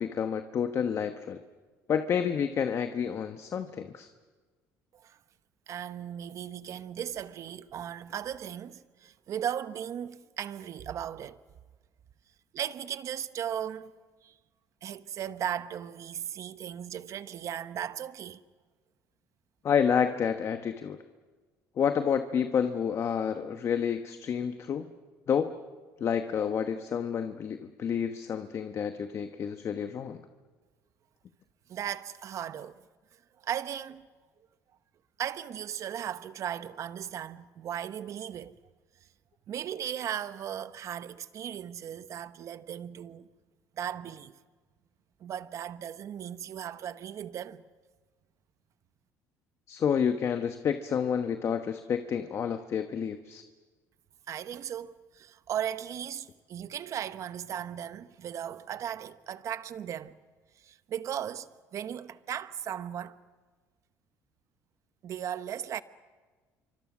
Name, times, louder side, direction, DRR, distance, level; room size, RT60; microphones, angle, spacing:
voice 1, 0.0-1.4 1.9-4.1 19.6-21.0 21.8-24.9 25.3-25.5 26.0-30.2 49.7-53.4, left 7 dB, 45° left, 1.1 m, -29 dB
voice 2, 5.7-11.4 12.5-13.9 14.2-14.3 14.8-18.4 31.7-32.8 33.4-34.1 35.2-38.6 39.5-43.3 43.7-44.3 45.2-47.6 54.3-60.2 60.6-63.2 65.0-65.8, right 9 dB, 50° right, 0.9 m, -37 dB
27.5 x 24.5 x 6.2 m
cardioid pair, 110°, 7 cm